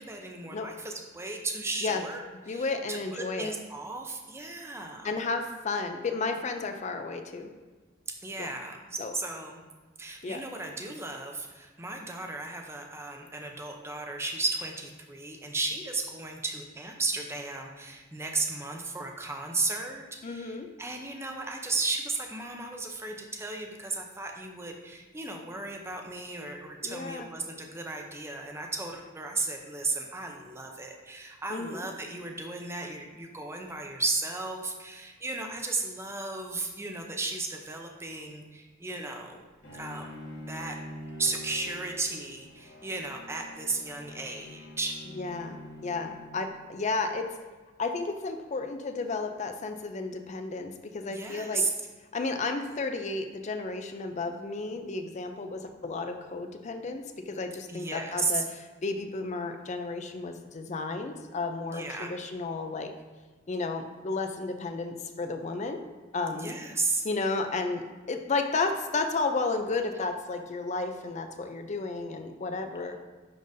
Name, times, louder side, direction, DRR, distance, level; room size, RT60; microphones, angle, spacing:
voice 1, 0.0-5.2 8.2-9.6 10.0-39.4 39.7-40.1 40.5-40.8 41.2-45.0 51.1-51.7 57.7-58.5 61.7-62.1 66.3-67.0, right 3 dB, 15° right, 2 dB, 0.6 m, -34 dB
voice 2, 2.5-3.5 5.0-7.5 8.4-8.5 9.0-9.1 10.2-10.4 20.2-20.7 26.8-27.3 31.5-31.9 45.2-45.6 45.8-47.3 47.8-51.6 52.1-58.4 58.8-62.9 63.5-65.8 66.1-66.5 67.0-73.0, left 3 dB, 35° left, 7 dB, 0.4 m, -32 dB
Bowed string instrument, 39.6-46.7, left 1 dB, 60° left, 1.6 m, -45 dB
10.5 x 3.8 x 2.6 m, 1.3 s
head